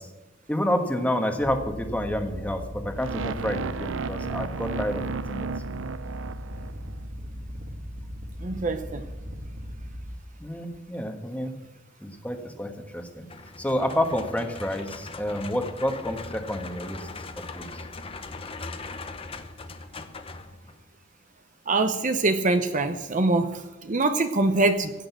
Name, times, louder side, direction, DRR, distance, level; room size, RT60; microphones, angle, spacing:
voice 1, 0.5-5.0 5.3-5.5 10.4-11.5 12.0-13.2 13.6-17.0 17.5-17.7, left 1 dB, 10° left, 4 dB, 1.4 m, -29 dB
sound 1, 1.4-10.2, equal, 65° right, 2.2 m, -38 dB
sound 2, 3.0-7.1, right 5 dB, 85° right, 0.5 m, -34 dB
voice 2, 8.4-9.0 21.7-24.9, right 2 dB, 40° right, 8 dB, 0.8 m, -24 dB
sound 3, 13.3-20.9, left 3 dB, 30° left, 0.8 m, -40 dB
16.5 x 6.6 x 8.1 m, 1.1 s
head